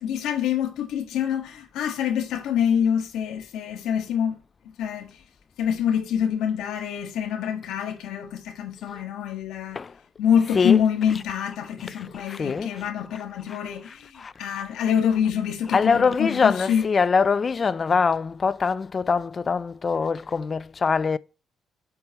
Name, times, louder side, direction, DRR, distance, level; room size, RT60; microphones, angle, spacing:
voice 1, 0.0-4.3 4.8-5.1 5.6-9.8 10.2-16.9, left 8 dB, 85° left, 1.6 m, -26 dB
voice 2, 12.3-12.7 14.2-14.6 15.7-21.2, left 5 dB, 40° left, 0.5 m, -23 dB
8.2 x 8.0 x 3.0 m
cardioid pair, 90°, 0 cm